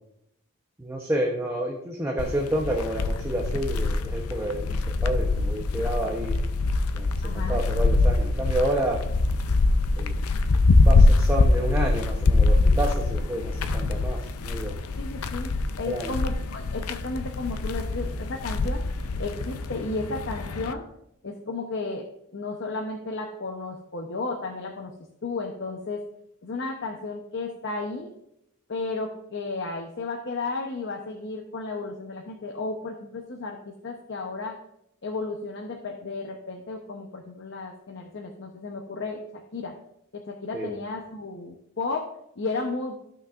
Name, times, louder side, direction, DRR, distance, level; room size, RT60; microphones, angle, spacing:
voice 1, 0.8-6.4 6.9-9.0 10.0-10.1 10.8-14.7 15.9-16.2 40.5-40.7, right 1 dB, 10° right, 0 dB, 0.8 m, -29 dB
sound 1, 2.2-20.7, left 2 dB, 85° left, 0.5 m, -24 dB
voice 2, 7.2-7.6 15.0-18.8 19.2-20.8 21.2-22.1 22.3-24.9 25.2-26.0 26.4-28.1 28.7-34.6 35.0-39.2 39.5-39.7 40.1-42.9, left 3 dB, 55° left, 1 dB, 0.8 m, -33 dB
14.5 x 5.9 x 2.5 m, 0.79 s
head